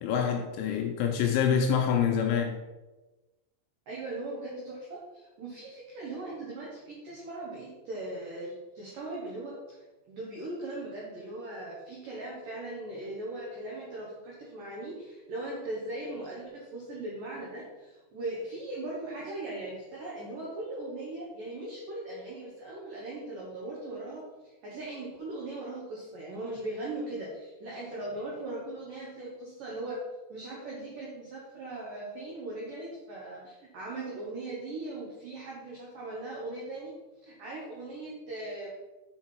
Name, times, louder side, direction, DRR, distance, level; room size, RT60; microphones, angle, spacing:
voice 1, 0.0-2.6, left 7 dB, 80° left, 2 dB, 2.8 m, -26 dB
voice 2, 3.9-9.8 10.1-30.0 30.3-36.9 37.2-38.7, right 2 dB, 80° right, -5 dB, 1.9 m, -39 dB
7.5 x 5.6 x 4.6 m, 1.1 s
omnidirectional pair, 6.0 m